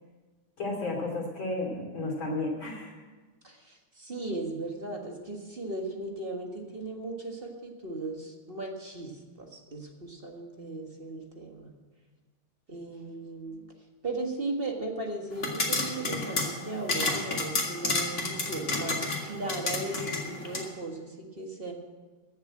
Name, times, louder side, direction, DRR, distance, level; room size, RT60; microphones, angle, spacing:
voice 1, 0.6-2.9, left 2 dB, 65° left, 0 dB, 3.6 m, -32 dB
voice 2, 3.4-9.1 9.4-11.7 12.7-13.7 14.0-21.7, right 2 dB, 30° right, 2 dB, 1.6 m, -37 dB
sound 1, 15.3-20.7, left 2 dB, 30° left, 2.0 m, -31 dB
15.0 x 7.5 x 8.6 m, 1.3 s
omnidirectional pair, 2.4 m